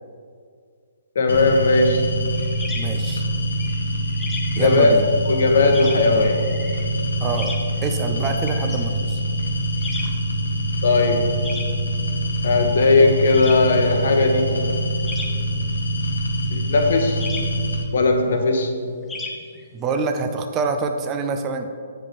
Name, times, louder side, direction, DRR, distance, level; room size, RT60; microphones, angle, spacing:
voice 1, 1.1-2.1 4.6-4.9 5.3-6.5 10.8-11.4 12.4-14.6 16.5-17.2 17.9-18.8, left 3 dB, 60° left, 4 dB, 1.0 m, -18 dB
sound 1, 1.3-17.8, right 1 dB, 80° left, 1.2 m, -25 dB
sound 2, 2.4-20.0, left 3 dB, 10° left, 0.9 m, -38 dB
voice 2, 2.7-3.2 4.6-5.1 7.2-7.5 7.8-9.2 19.7-21.7, right 4 dB, 25° right, 6 dB, 0.6 m, -26 dB
8.5 x 5.1 x 4.2 m, 2.1 s
figure-of-eight pair, 130°, 0 cm